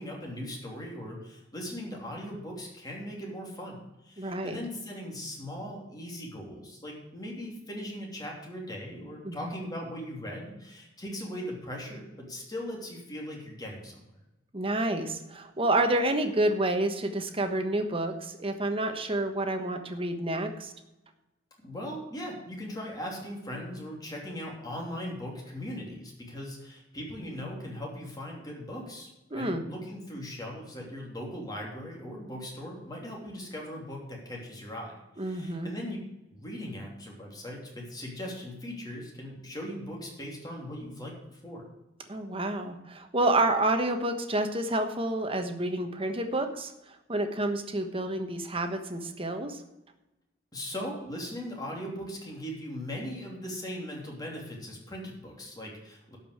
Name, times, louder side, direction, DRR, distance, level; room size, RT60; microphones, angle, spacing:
voice 1, 0.0-14.0 21.6-36.0 36.3-41.7 50.5-56.2, equal, 20° left, -2 dB, 3.0 m, -39 dB
voice 2, 4.2-4.6 9.2-9.5 14.5-20.7 29.3-29.6 35.2-35.7 42.1-49.6, right 2 dB, 30° right, 6 dB, 1.2 m, -29 dB
12.0 x 5.5 x 8.0 m, 0.96 s
head